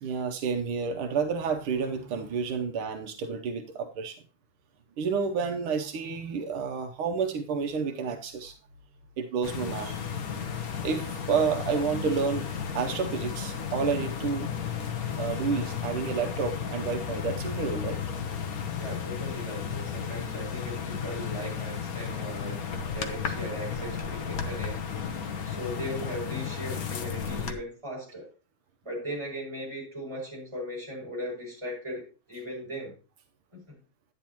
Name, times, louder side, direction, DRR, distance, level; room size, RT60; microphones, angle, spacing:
voice 1, 0.0-4.2 5.0-8.5 9.2-10.0 10.8-12.5 12.7-14.5 15.2-18.0, right 5 dB, 85° right, 5 dB, 1.7 m, -30 dB
sound 1, 9.4-27.5, left 7 dB, 55° left, 1.2 m, -33 dB
voice 2, 18.7-22.6 22.9-24.8 25.4-28.3 28.8-32.9 33.5-33.8, equal, 15° right, -4 dB, 6.4 m, -38 dB
10.5 x 10.0 x 2.9 m, 0.36 s
omnidirectional pair, 2.3 m